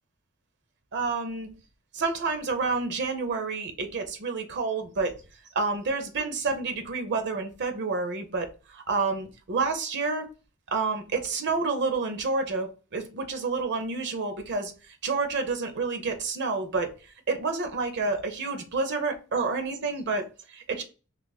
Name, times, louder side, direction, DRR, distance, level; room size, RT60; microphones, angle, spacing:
voice 1, 0.9-1.5 1.9-5.1 5.5-10.3 10.7-16.9 17.3-20.8, right 4 dB, 55° right, 0.6 m, -29 dB
3.0 x 2.4 x 4.0 m
head